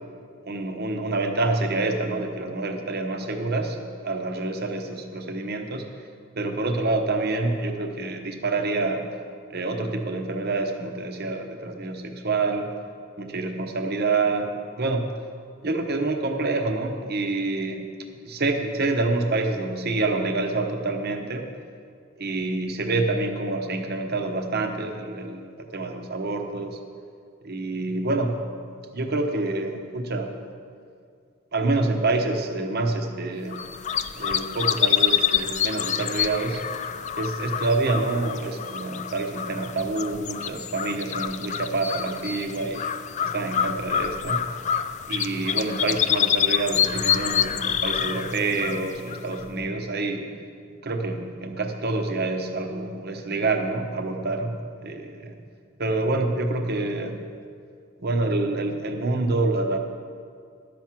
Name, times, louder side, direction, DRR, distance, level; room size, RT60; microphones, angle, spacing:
voice 1, 0.4-5.9 6.4-9.1 9.5-12.7 13.2-15.1 15.6-17.8 18.2-21.5 22.2-26.8 27.4-28.4 28.9-30.3 31.5-33.6 34.1-36.6 37.2-42.8 43.2-44.4 45.1-50.2 50.8-55.4 55.8-57.2 58.0-59.8, right 2 dB, 50° right, 5 dB, 0.9 m, -27 dB
sound 1, 33.5-49.6, left 9 dB, 35° left, 0.3 m, -27 dB
12.0 x 5.9 x 7.4 m, 2.3 s
head